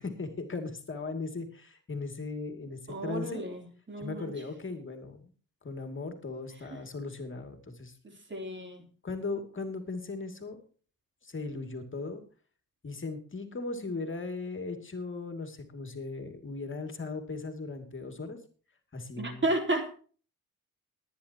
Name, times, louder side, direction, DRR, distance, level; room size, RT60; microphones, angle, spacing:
voice 1, 0.0-3.4 4.0-5.3 5.6-8.0 9.0-10.6 11.2-12.2 12.8-18.4 18.9-19.5, left 3 dB, 35° left, 2.6 m, -38 dB
voice 2, 2.9-4.3 8.3-8.8 19.2-19.9, right 1 dB, 35° right, 3.5 m, -32 dB
19.5 x 10.0 x 2.9 m
cardioid pair, 80°, 33 cm